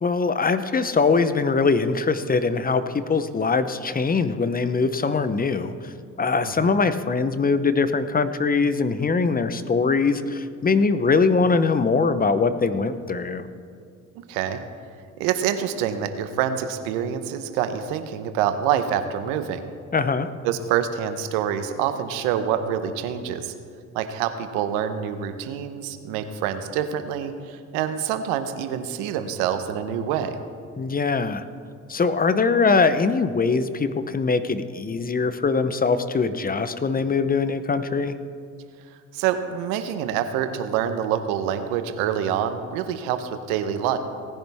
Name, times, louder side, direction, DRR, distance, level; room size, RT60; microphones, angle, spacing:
voice 1, 0.0-13.4 19.9-20.3 30.8-31.4 31.9-38.1, left 4 dB, 25° left, 12 dB, 0.8 m, -22 dB
voice 2, 6.4-6.7 14.1-14.6 15.2-19.6 20.4-23.5 23.9-30.4 39.1-44.0, right 9 dB, 85° right, 9 dB, 1.0 m, -26 dB
18.0 x 10.5 x 3.5 m, 2.3 s
supercardioid pair, 65°, 34 cm